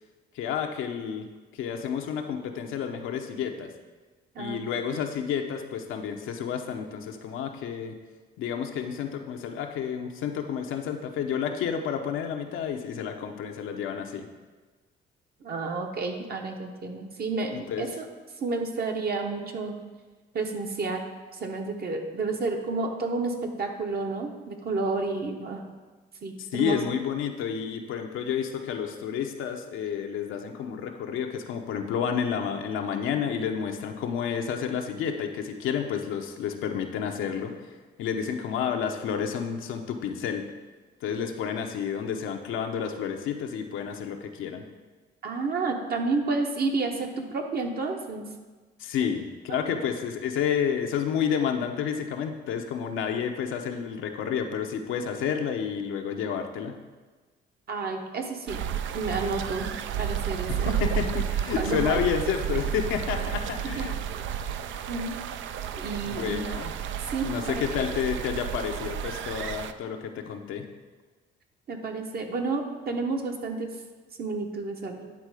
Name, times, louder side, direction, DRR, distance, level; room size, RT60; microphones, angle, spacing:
voice 1, 0.3-1.3 1.5-3.7 4.4-7.9 8.4-14.2 17.5-17.9 26.4-37.5 38.0-40.4 41.0-44.6 48.8-56.8 60.5-64.0 66.0-66.7 67.2-70.6, left 7 dB, 90° left, 4 dB, 0.8 m, -30 dB
voice 2, 15.4-18.1 18.4-19.8 20.3-21.0 21.3-25.6 26.2-26.8 45.2-48.2 49.0-49.1 49.5-49.7 57.7-58.6 58.9-59.7 60.0-60.8 61.6-62.0 64.9-65.2 65.7-66.4 67.1-67.6 71.7-73.7 74.2-75.1, right 3 dB, 50° right, 3 dB, 1.1 m, -30 dB
sound 1, 58.5-69.7, right 9 dB, 75° right, 0.4 m, -32 dB
9.7 x 3.7 x 4.9 m, 1.3 s
cardioid pair, 90°, 20 cm